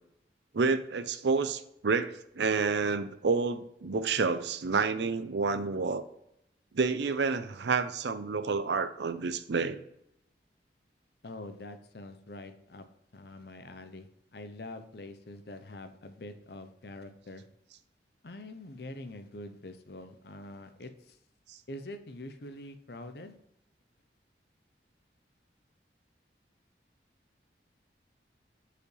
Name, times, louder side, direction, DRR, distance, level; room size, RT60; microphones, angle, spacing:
voice 1, 0.5-6.0 6.7-9.8, right 4 dB, 75° right, 12 dB, 0.5 m, -29 dB
voice 2, 11.2-12.9 13.1-17.4 18.2-21.2 21.7-23.4, left 1 dB, 60° left, 8 dB, 0.7 m, -45 dB
6.9 x 5.0 x 3.2 m, 0.79 s
head